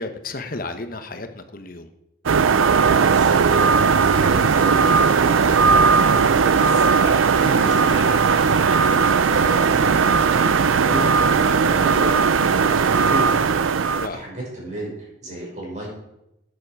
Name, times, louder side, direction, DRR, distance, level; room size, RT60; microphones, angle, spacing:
voice 1, 0.0-1.9 14.0-14.3, left 2 dB, 45° left, 8 dB, 1.1 m, -33 dB
sound 1, 2.3-14.1, right 5 dB, 85° right, 0.5 m, -17 dB
voice 2, 2.7-8.1 8.4-11.3 11.6-13.4 13.6-15.9, right 1 dB, 35° right, -2 dB, 5.2 m, -33 dB
sound 2, 2.9-14.3, left 4 dB, 65° left, 1.0 m, -40 dB
13.5 x 9.7 x 4.8 m, 0.86 s
head